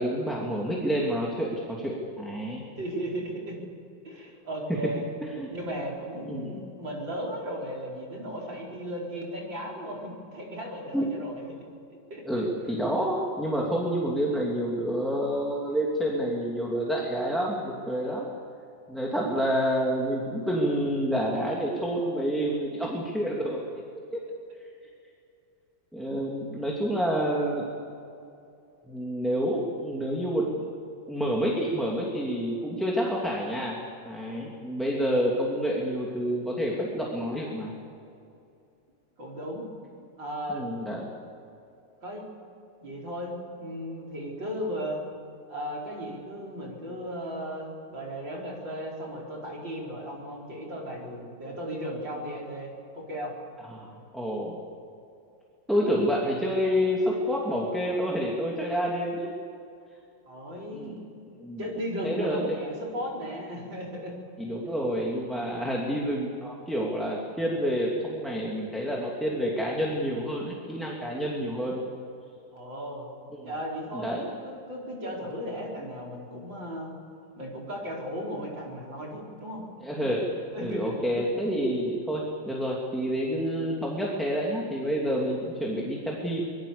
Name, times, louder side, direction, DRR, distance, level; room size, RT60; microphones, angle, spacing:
voice 1, 0.0-2.6 4.8-4.9 5.4-5.5 6.3-6.5 10.9-11.1 12.2-18.3 18.9-23.6 24.1-24.2 25.9-27.7 28.9-30.6 31.1-33.7 34.0-37.7 40.5-41.1 53.7-53.9 54.1-54.6 55.7-59.3 60.7-61.0 61.4-61.6 62.0-62.6 64.4-71.8 73.4-73.5 73.9-74.2 79.8-80.3 80.6-86.4, equal, ahead, -3 dB, 2.8 m, -28 dB
voice 2, 2.8-3.6 4.1-5.1 5.5-11.6 12.1-12.5 39.2-39.6 40.2-40.7 42.0-42.2 42.8-45.0 45.5-53.3 60.3-61.0 61.6-64.1 72.5-73.1 73.4-76.9 77.4-79.6 80.5-81.0, equal, 70° right, -2 dB, 5.2 m, -36 dB
25.5 x 20.5 x 7.1 m, 2.6 s
omnidirectional pair, 2.1 m